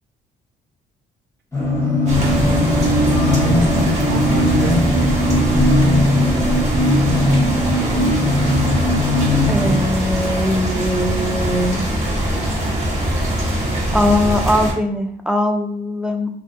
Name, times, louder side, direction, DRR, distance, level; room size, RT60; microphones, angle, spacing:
sound 1, 1.5-9.8, left 1 dB, 15° left, 0.8 m, -18 dB
sound 2, 2.1-14.7, right 1 dB, 35° right, 1.1 m, -22 dB
voice 1, 2.1-2.7 3.4-4.8, right 3 dB, 60° right, 2 dB, 0.5 m, -28 dB
voice 2, 9.5-12.0 13.9-16.3, left 1 dB, 5° right, 4 dB, 0.3 m, -20 dB
2.4 x 2.3 x 2.6 m, 0.65 s
cardioid pair, 90°, 20 cm